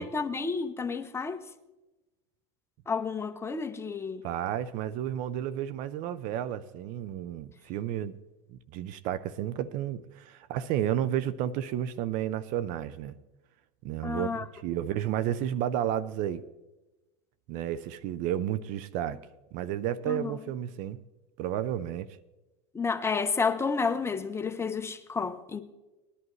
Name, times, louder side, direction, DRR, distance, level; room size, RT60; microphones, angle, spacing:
voice 1, 0.0-1.4 2.9-4.2 14.0-14.4 20.1-20.3 22.7-25.6, left 5 dB, 15° left, 0.9 m, -30 dB
voice 2, 4.2-8.2 8.5-13.2 13.8-16.4 17.5-19.2 19.5-21.0 21.4-22.2, right 11 dB, 55° right, 0.6 m, -32 dB
19.5 x 11.0 x 3.2 m
supercardioid pair, 105°, 16 cm